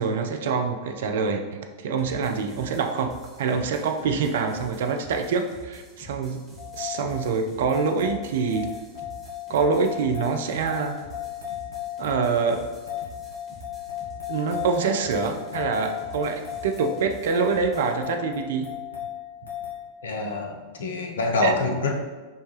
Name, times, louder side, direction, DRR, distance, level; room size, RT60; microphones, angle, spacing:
voice 1, 0.0-6.4 6.7-8.7 9.5-11.0 12.0-12.7 14.3-18.7 21.4-21.5, right 5 dB, 60° right, 5 dB, 0.4 m, -25 dB
sound 1, 2.0-18.0, right 1 dB, 5° left, 1.2 m, -47 dB
sound 2, 6.6-19.9, left 11 dB, 80° left, 0.9 m, -36 dB
voice 2, 20.0-21.9, left 3 dB, 65° left, 2 dB, 0.6 m, -26 dB
5.3 x 2.2 x 3.1 m, 1.3 s
figure-of-eight pair, 90°, 0 cm